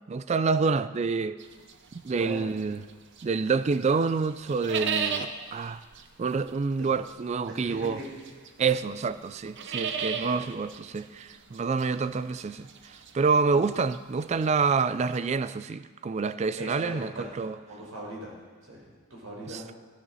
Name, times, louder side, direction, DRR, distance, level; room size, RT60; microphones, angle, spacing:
voice 1, 0.1-1.4 2.0-2.8 3.2-5.8 6.2-8.0 8.6-17.6 19.5-19.6, right 4 dB, 30° right, 0.3 m, -27 dB
sound 1, 1.4-3.4 3.7-15.2, right 6 dB, 55° right, 0.8 m, -36 dB
voice 2, 2.2-2.5 6.8-6.9 7.5-8.1 9.8-10.0 10.3-10.4 16.6-17.3 17.6-18.4 18.6-18.8 19.1-19.7, right 1 dB, 80° right, 4.4 m, -39 dB
13.0 x 12.5 x 4.1 m
head